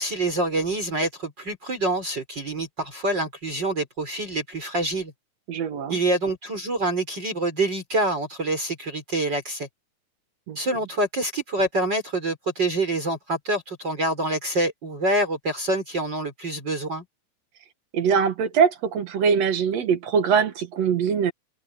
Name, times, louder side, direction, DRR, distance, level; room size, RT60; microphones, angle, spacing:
voice 1, 0.0-5.1 5.9-9.7 10.6-17.0, right 2 dB, 35° right, 5.8 m, -26 dB
voice 2, 5.5-6.0 10.5-10.6 17.9-21.3, right 6 dB, 60° right, 2.3 m, -22 dB
omnidirectional pair, 3.6 m